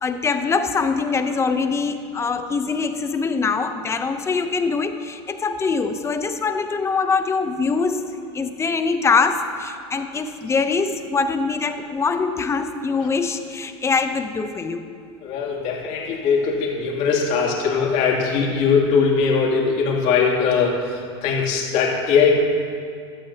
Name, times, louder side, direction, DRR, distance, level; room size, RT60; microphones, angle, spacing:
voice 1, 0.0-14.9, left 4 dB, 20° left, 8 dB, 0.8 m, -23 dB
voice 2, 15.2-22.3, left 5 dB, 55° left, -2 dB, 2.8 m, -20 dB
16.0 x 12.5 x 2.9 m, 2.2 s
supercardioid pair, 120°, 15 cm